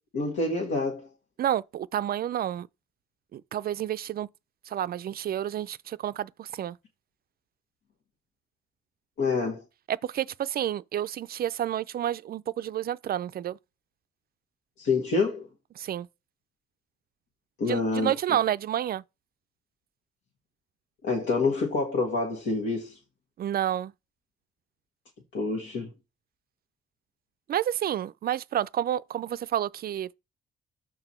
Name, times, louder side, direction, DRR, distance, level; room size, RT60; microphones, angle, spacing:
voice 1, 0.1-1.1 9.2-9.6 14.8-15.5 17.6-18.1 21.0-23.0 25.3-25.9, left 3 dB, 75° left, 1.9 m, -27 dB
voice 2, 1.4-2.7 3.3-4.3 4.7-6.8 9.9-13.6 15.8-16.1 17.7-19.0 23.4-23.9 27.5-30.1, right 11 dB, 50° right, 0.4 m, -30 dB
6.0 x 4.6 x 4.3 m
cardioid pair, 90°, 20 cm